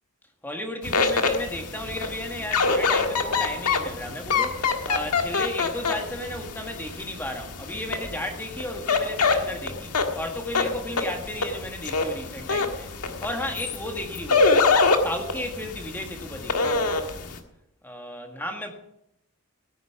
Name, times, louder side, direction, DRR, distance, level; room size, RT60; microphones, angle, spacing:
voice 1, 0.4-4.6 4.9-9.9 10.2-12.9 13.2-14.7 15.0-16.7 17.8-18.7, left 1 dB, 10° left, 1.6 m, -34 dB
sound 1, 0.8-17.4, left 4 dB, 90° left, 1.6 m, -26 dB
16.0 x 9.4 x 6.0 m
head